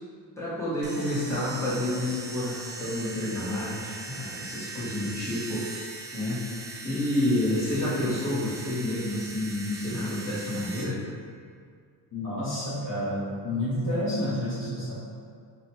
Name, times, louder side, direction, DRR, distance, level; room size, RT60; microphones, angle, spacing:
voice 1, 0.4-5.7 6.1-11.0, left 1 dB, 5° left, -8 dB, 0.7 m, -29 dB
sound 1, 0.8-10.8, right 3 dB, 25° right, 0.4 m, -40 dB
voice 2, 12.1-15.0, left 1 dB, 45° left, -13 dB, 1.2 m, -29 dB
4.1 x 2.1 x 4.2 m, 2.1 s
wide cardioid pair, 175°, 43 cm